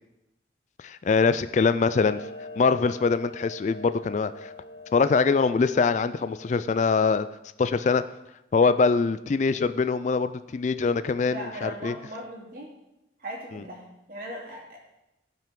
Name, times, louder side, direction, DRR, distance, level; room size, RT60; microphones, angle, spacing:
voice 1, 0.8-2.2 2.6-4.5 4.9-7.3 7.6-8.0 8.5-11.9, left 4 dB, 40° left, 13 dB, 0.3 m, -23 dB
Clock, 1.9-6.9, left 2 dB, 70° left, 1.1 m, -43 dB
voice 2, 11.3-12.7 13.2-14.8, equal, 50° right, -2 dB, 2.6 m, -38 dB
16.5 x 5.9 x 3.7 m, 0.91 s
head